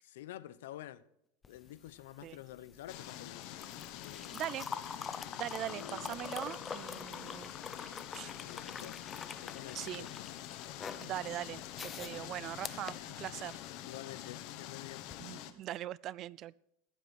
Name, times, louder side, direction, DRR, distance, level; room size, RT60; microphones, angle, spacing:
voice 1, 0.0-1.0 1.5-3.5 4.0-4.4 5.6-6.3 8.4-9.0 9.4-10.3 13.9-15.1, left 13 dB, 85° left, 0.8 m, -49 dB
sound 1, 1.4-13.7 15.0-15.2, left 6 dB, 20° left, 0.8 m, -45 dB
sound 2, 2.9-15.5, left 12 dB, 55° left, 1.3 m, -46 dB
voice 2, 4.3-4.7 5.3-7.5 7.8-8.3 9.7-10.1 11.0-13.6 15.2-16.6, right 13 dB, 40° right, 0.4 m, -41 dB
15.5 x 11.5 x 4.3 m
supercardioid pair, 150°, 0 cm